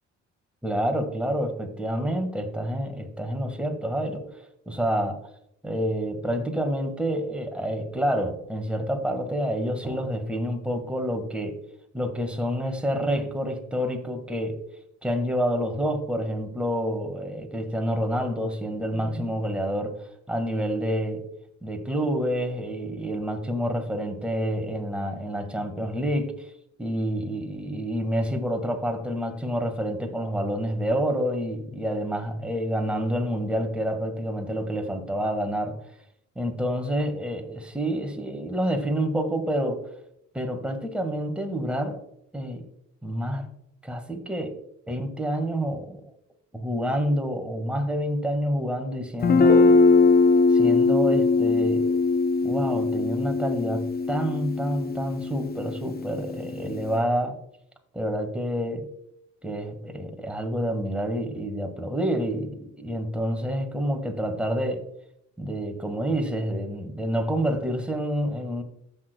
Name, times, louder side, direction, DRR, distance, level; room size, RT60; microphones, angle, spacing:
voice 1, 0.6-4.2 4.7-5.2 5.6-11.5 11.9-14.6 15.0-20.0 20.3-21.3 21.6-26.5 26.8-35.8 36.4-39.9 40.3-42.0 42.3-42.7 43.0-43.5 43.8-44.5 44.9-46.0 46.5-49.7 50.5-51.9 52.4-57.4 57.9-58.9 59.4-64.8 65.4-68.6, equal, 5° right, 4 dB, 1.7 m, -28 dB
Guitar, 49.2-56.9, left 3 dB, 30° left, 0.6 m, -21 dB
14.5 x 6.4 x 2.3 m, 0.75 s
cardioid pair, 90°, 30 cm